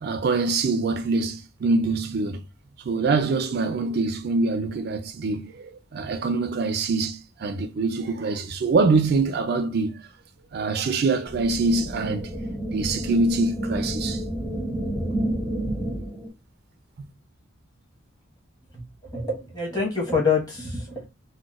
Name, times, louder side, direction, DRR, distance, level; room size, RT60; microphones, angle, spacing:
voice 1, 0.0-2.4 2.8-10.1 10.5-12.3 12.7-14.2 17.0-17.1, right 3 dB, 50° right, 0.3 m, -24 dB
sound 1, 11.3-16.3, right 1 dB, ahead, 0.6 m, -29 dB
voice 2, 18.7-21.1, left 4 dB, 20° left, 1.1 m, -26 dB
3.9 x 2.1 x 2.3 m
head